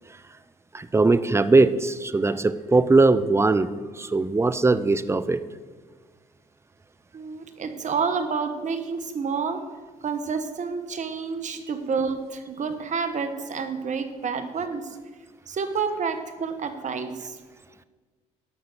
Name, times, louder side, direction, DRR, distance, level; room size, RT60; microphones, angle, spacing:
voice 1, 0.7-5.4 11.5-11.6, right 3 dB, 15° right, 13 dB, 0.7 m, -20 dB
voice 2, 7.1-9.6 10.0-15.0 15.5-17.4, right 5 dB, 50° right, 8 dB, 1.3 m, -29 dB
12.5 x 5.7 x 6.7 m, 1.4 s
hypercardioid pair, 55°, 16 cm